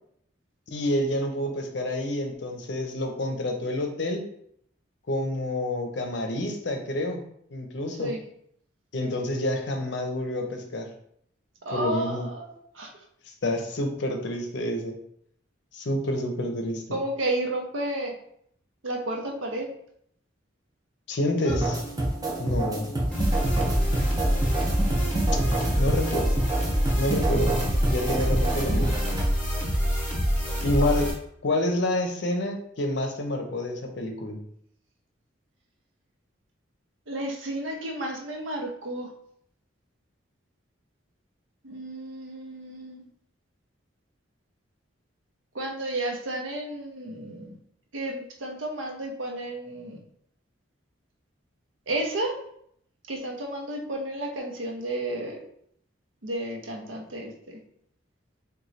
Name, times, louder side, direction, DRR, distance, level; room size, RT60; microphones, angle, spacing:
voice 1, 0.7-4.2 5.1-7.2 7.5-8.1 8.9-10.9 11.7-12.3 13.4-15.0 15.7-16.9 21.1-21.8 22.4-22.9 25.8-26.3 27.0-27.6 27.9-28.9 30.6-31.1 31.4-34.4, left 1 dB, 60° left, 4 dB, 0.6 m, -28 dB
voice 2, 11.6-12.9 16.9-18.1 18.8-19.7 21.4-21.6 24.9-25.0 37.1-39.1 41.6-43.1 45.5-47.6 47.9-50.0 51.9-52.4 53.1-55.4 56.2-57.6, right 1 dB, 80° right, 2 dB, 0.7 m, -32 dB
sound 1, 21.5-29.3, right 1 dB, 20° right, 0.5 m, -28 dB
sound 2, 23.1-31.1, equal, 5° left, 0.9 m, -26 dB
3.0 x 2.2 x 3.9 m, 0.68 s
head